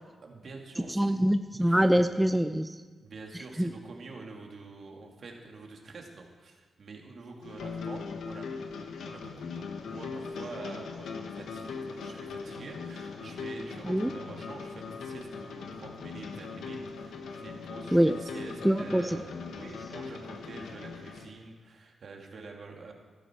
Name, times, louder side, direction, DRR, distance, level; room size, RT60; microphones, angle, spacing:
voice 1, 0.2-1.1 1.6-2.1 3.0-8.5 9.0-22.9, right 3 dB, 65° right, 1 dB, 2.5 m, -46 dB
voice 2, 0.9-2.8 3.6-3.7 13.9-14.1 17.9-18.2 18.6-19.2, equal, 5° right, 9 dB, 0.5 m, -24 dB
sound 1, 7.4-21.3, left 5 dB, 85° left, 1.2 m, -40 dB
15.0 x 12.5 x 4.6 m, 1.4 s
cardioid pair, 65°, 0 cm